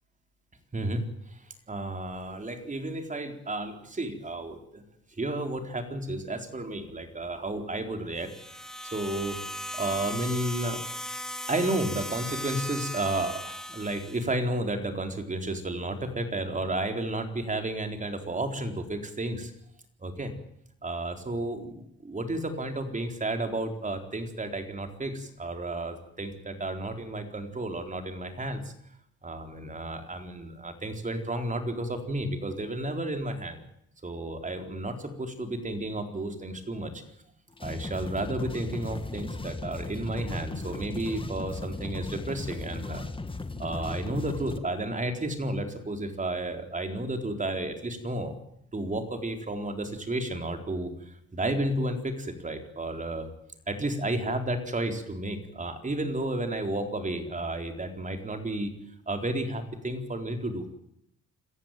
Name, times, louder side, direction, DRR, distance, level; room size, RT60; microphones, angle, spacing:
voice 1, 0.7-4.8 5.2-9.4 9.7-10.8 11.5-19.5 20.0-20.3 20.8-28.7 29.2-33.6 34.0-37.0 37.6-43.1 43.6-48.4 48.7-53.3 53.7-58.7 59.1-60.7, right 1 dB, 25° right, 6 dB, 4.2 m, -32 dB
sound 1, 8.2-14.3, equal, ahead, 1.6 m, -37 dB
sound 2, 37.5-44.6, left 3 dB, 15° left, 2.1 m, -37 dB
26.5 x 15.0 x 9.2 m, 0.75 s
cardioid pair, 90°, 30 cm